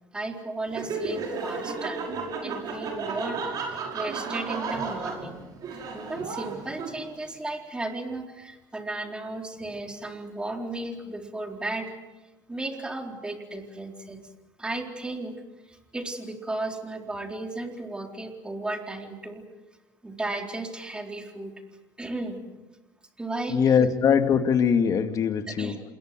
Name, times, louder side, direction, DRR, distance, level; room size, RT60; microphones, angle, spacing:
voice 1, 0.1-2.0 2.4-5.4 5.9-11.9 12.5-14.2 14.6-15.4 15.7-19.4 20.0-21.5 22.0-22.4 23.2-23.7 25.5-25.8, right 2 dB, 10° right, 3 dB, 4.0 m, -34 dB
Laughter, 0.7-7.2, right 4 dB, 50° right, 6.1 m, -33 dB
voice 2, 23.5-25.7, left 7 dB, 45° left, 7 dB, 2.5 m, -22 dB
27.5 x 21.5 x 7.8 m, 1.1 s
cardioid pair, 120°, 8 cm